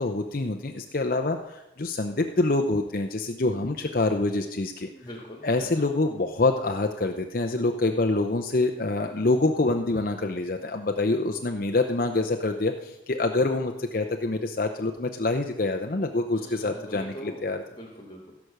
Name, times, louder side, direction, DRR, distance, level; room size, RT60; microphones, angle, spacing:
voice 1, 0.0-4.9 5.4-17.6, left 2 dB, 50° left, 4 dB, 0.7 m, -26 dB
voice 2, 4.9-5.9 16.3-17.5 17.8-18.3, equal, 25° left, 0 dB, 1.6 m, -43 dB
16.0 x 6.1 x 6.6 m, 0.96 s
head